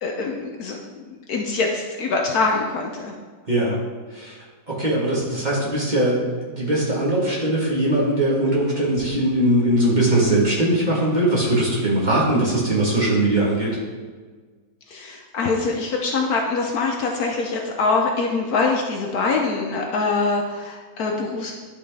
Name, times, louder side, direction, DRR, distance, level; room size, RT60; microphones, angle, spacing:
voice 1, 0.0-3.1 14.9-21.5, left 3 dB, 65° left, 1 dB, 1.1 m, -24 dB
voice 2, 3.5-3.8 4.1-4.4 4.7-13.8, right 1 dB, 25° right, -6 dB, 1.5 m, -20 dB
11.0 x 4.2 x 3.5 m, 1.5 s
omnidirectional pair, 1.9 m